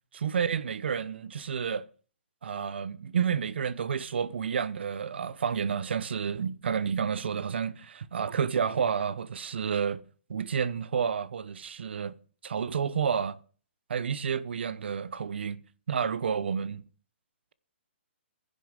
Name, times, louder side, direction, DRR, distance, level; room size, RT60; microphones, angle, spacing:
voice 1, 0.1-1.9 2.4-10.0 10.3-12.1 12.4-13.4 13.9-15.6 15.9-16.8, right 7 dB, 60° right, 0.9 m, -30 dB
11.0 x 6.9 x 8.8 m
hypercardioid pair, 170°, 6 cm